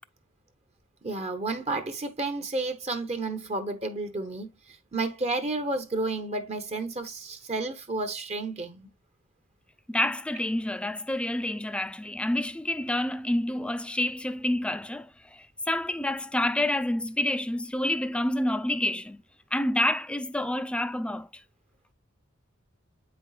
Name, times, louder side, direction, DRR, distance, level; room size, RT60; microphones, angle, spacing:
voice 1, 1.0-8.9, right 2 dB, 30° right, 0.9 m, -31 dB
voice 2, 9.9-19.2 19.5-21.3, left 1 dB, 5° left, 0.4 m, -28 dB
8.4 x 5.3 x 2.3 m
head